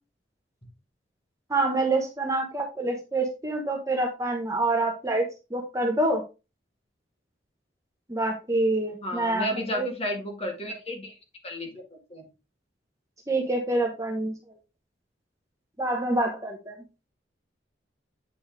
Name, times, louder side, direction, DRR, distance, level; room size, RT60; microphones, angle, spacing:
voice 1, 1.5-5.2 5.5-6.2 8.1-9.9 13.3-14.3 15.8-16.8, right 2 dB, 15° right, 2 dB, 1.1 m, -26 dB
voice 2, 9.0-11.2 11.4-12.2, equal, 35° left, 1 dB, 1.8 m, -33 dB
8.2 x 4.3 x 3.4 m, 0.28 s
head